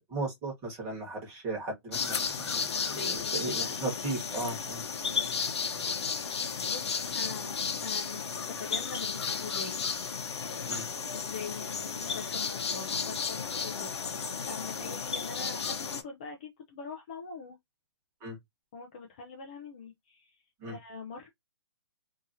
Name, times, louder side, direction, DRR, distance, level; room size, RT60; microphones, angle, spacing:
voice 1, 0.1-2.6 2.9-4.8 10.7-10.8 18.2-18.4 20.6-20.8, right 2 dB, 15° right, 1.3 m, -36 dB
sound 1, 1.9-16.0, left 5 dB, 80° left, 0.7 m, -33 dB
voice 2, 2.6-3.8 6.7-9.9 10.6-17.6 18.7-21.3, left 5 dB, 20° left, 0.3 m, -44 dB
2.7 x 2.7 x 2.5 m
hypercardioid pair, 170°, 14 cm